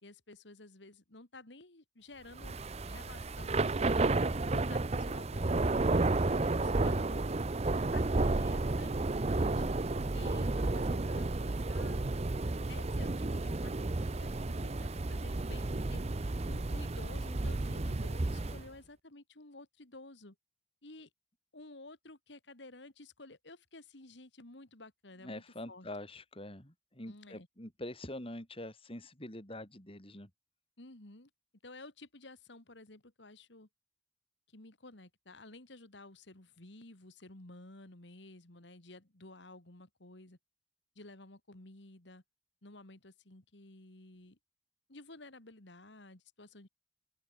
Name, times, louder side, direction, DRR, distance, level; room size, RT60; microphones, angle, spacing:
voice 1, 0.0-2.6 2.8-7.3 7.6-9.7 10.1-12.0 12.7-20.4 20.8-21.1 21.5-25.9 27.1-27.5 30.8-31.3 31.6-33.7 34.5-40.4 41.0-42.2 42.6-44.4 44.9-46.7, left 2 dB, 70° left, 2.5 m, -53 dB
Thunder / Rain, 2.4-18.7, right 2 dB, 35° right, 0.7 m, -32 dB
voice 2, 25.2-30.3, left 1 dB, 30° left, 4.5 m, -45 dB
open air
head